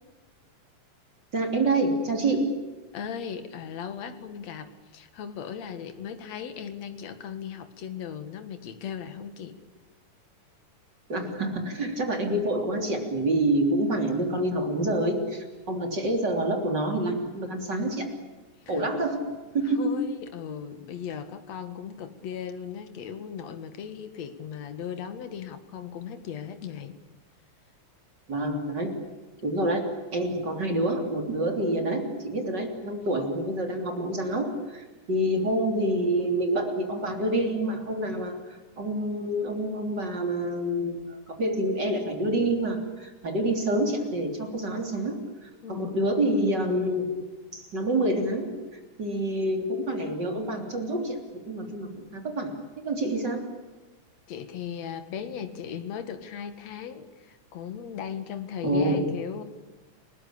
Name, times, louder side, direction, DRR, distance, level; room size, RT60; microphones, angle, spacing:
voice 1, 1.3-2.6 11.1-18.1 18.7-19.2 19.5-20.0 28.3-28.9 29.4-47.1 47.5-48.5 49.0-51.2 51.4-52.5 52.8-53.5 58.6-59.1, right 1 dB, 35° right, 4 dB, 3.8 m, -27 dB
voice 2, 2.9-9.6 18.7-18.9 19.6-27.0 45.6-45.9 54.3-59.4, left 8 dB, 65° left, 9 dB, 3.0 m, -37 dB
30.0 x 19.5 x 8.6 m, 1.2 s
omnidirectional pair, 3.4 m